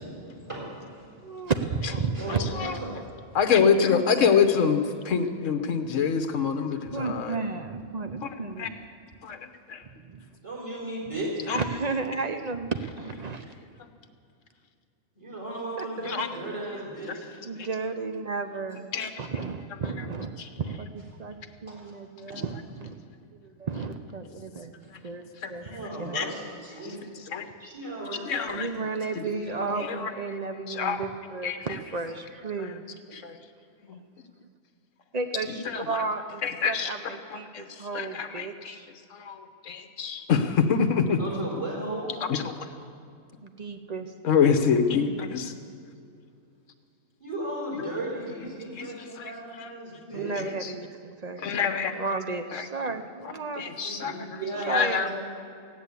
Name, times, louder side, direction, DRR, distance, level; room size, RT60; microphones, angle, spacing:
voice 1, 0.0-1.5 2.1-2.9 3.3-3.4 10.3-11.5 15.2-17.3 21.7-21.9 22.3-22.4 24.8-24.9 25.6-27.0 27.6-28.6 29.2-29.8 41.2-42.1 47.2-50.3 53.8-55.1, right 1 dB, 20° right, -5 dB, 4.1 m, -36 dB
voice 2, 1.2-3.0 6.9-8.8 10.0-10.3 11.5-13.4 15.8-16.4 17.5-21.4 21.6-23.0 23.4-24.7 25.0-26.2 28.5-33.2 34.4-34.5 35.1-38.9 43.4-44.1 50.1-53.6 54.7-55.1, right 4 dB, 40° right, 7 dB, 0.6 m, -33 dB
voice 3, 2.3-2.8 3.3-7.5 8.6-8.7 9.2-9.4 9.7-9.8 11.5-11.8 16.0-16.3 17.1-17.2 17.6-17.7 18.9-19.1 19.8-20.0 20.4-20.5 25.4-25.5 26.1-26.3 27.2-27.4 28.3-28.7 29.1-29.2 29.7-30.3 30.7-31.0 31.4-31.8 32.6-32.7 33.1-33.4 33.9-34.0 35.5-36.0 36.4-37.6 37.9-38.8 39.1-41.2 42.2-42.7 44.2-45.5 47.7-47.9 48.7-48.9 49.2-49.7 50.3-50.7 51.4-52.0 52.5-52.7 53.2-55.1, left 6 dB, 65° left, 8 dB, 1.3 m, -26 dB
15.0 x 10.0 x 8.3 m, 2.4 s
omnidirectional pair, 1.4 m